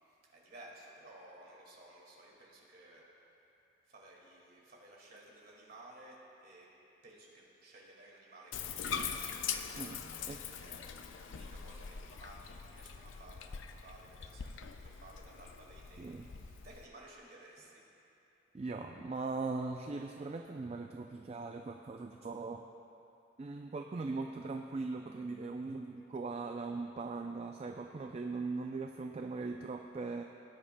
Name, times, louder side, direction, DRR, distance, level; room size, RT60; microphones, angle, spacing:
voice 1, 0.1-3.1 3.8-6.7 7.0-9.1 10.2-17.8, right 1 dB, 50° right, -3 dB, 2.0 m, -56 dB
Bathtub (filling or washing), 8.5-16.9, left 7 dB, 75° left, 0.5 m, -43 dB
voice 2, 9.7-10.4 16.0-16.3 18.5-22.6 23.4-30.2, right 3 dB, 30° right, 4 dB, 0.3 m, -40 dB
17.5 x 9.8 x 2.2 m, 2.9 s
head